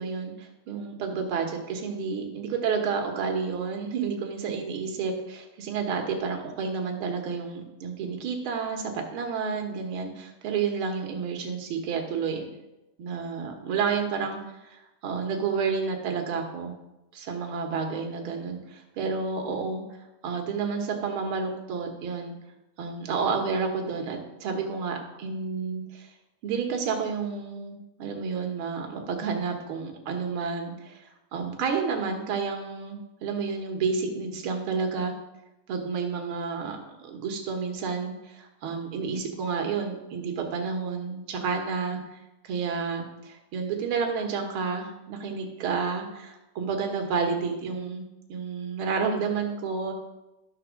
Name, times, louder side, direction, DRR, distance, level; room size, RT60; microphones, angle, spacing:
voice 1, 0.0-8.8 9.1-12.4 13.0-16.7 17.1-20.0 20.2-22.3 22.8-26.1 26.4-35.1 35.7-36.8 37.0-48.0 48.3-49.9, right 5 dB, 55° right, 3 dB, 1.8 m, -30 dB
12.0 x 4.2 x 6.3 m, 0.97 s
omnidirectional pair, 3.5 m